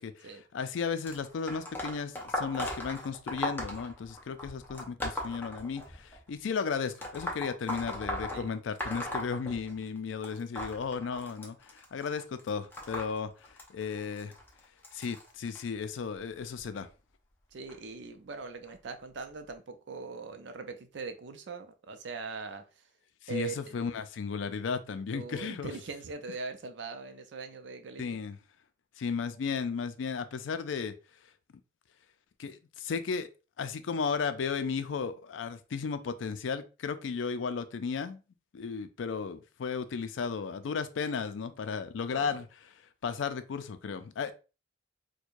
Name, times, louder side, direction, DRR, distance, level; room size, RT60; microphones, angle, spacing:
voice 1, 0.0-13.3 13.7-14.3 14.9-16.9 23.2-25.7 28.0-28.4 29.0-30.9 32.4-33.3 33.6-38.2 38.5-42.5 43.0-44.3, left 5 dB, 90° left, 0.4 m, -34 dB
sound 1, 1.1-6.2 6.9-10.0 10.2-15.6 16.4-16.6 17.7-17.8 18.7-18.8 19.5-19.6, left 1 dB, 10° left, 0.6 m, -38 dB
voice 2, 17.5-22.8 23.3-23.9 25.1-28.0 42.1-42.4, right 4 dB, 70° right, 0.5 m, -41 dB
4.5 x 2.2 x 2.5 m
head